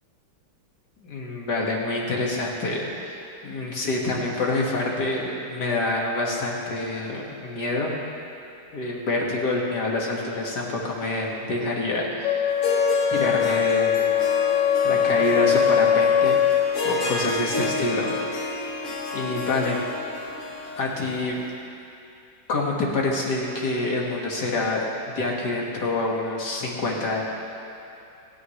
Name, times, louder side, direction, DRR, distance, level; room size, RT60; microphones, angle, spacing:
voice 1, 1.0-8.0 8.7-12.5 13.1-14.1 14.8-18.1 19.1-19.9 20.8-21.4 22.5-27.3, left 2 dB, 60° left, -2 dB, 2.4 m, -27 dB
Wind instrument woodwind instrument, 12.2-16.7, left 8 dB, 90° left, 1.4 m, -21 dB
Harp, 12.5-21.5, left 2 dB, 45° left, 1.5 m, -31 dB
28.5 x 9.8 x 3.2 m, 2.7 s
omnidirectional pair, 2.0 m